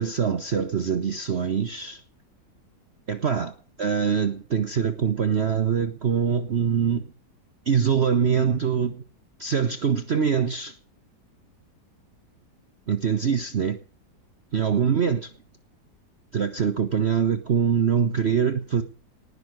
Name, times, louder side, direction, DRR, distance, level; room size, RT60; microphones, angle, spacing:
voice 1, 0.0-2.0 3.1-7.1 7.7-9.0 9.4-10.7 12.9-13.8 14.5-15.3 16.3-18.8, right 7 dB, 45° right, 1.0 m, -24 dB
19.5 x 6.7 x 9.4 m
omnidirectional pair, 1.9 m